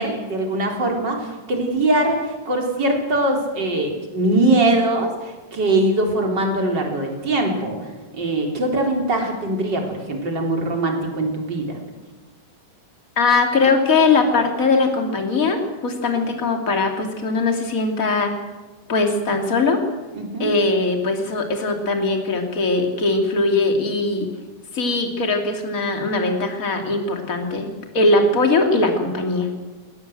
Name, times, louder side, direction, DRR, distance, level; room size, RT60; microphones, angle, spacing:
voice 1, 0.0-7.8 8.1-11.7 20.1-20.5, right 2 dB, 30° right, 2 dB, 4.2 m, -22 dB
voice 2, 13.2-18.3 18.9-19.8 20.4-24.3 24.7-27.7 27.9-29.5, left 3 dB, 25° left, 4 dB, 2.9 m, -20 dB
21.0 x 18.0 x 8.0 m, 1.2 s
omnidirectional pair, 3.9 m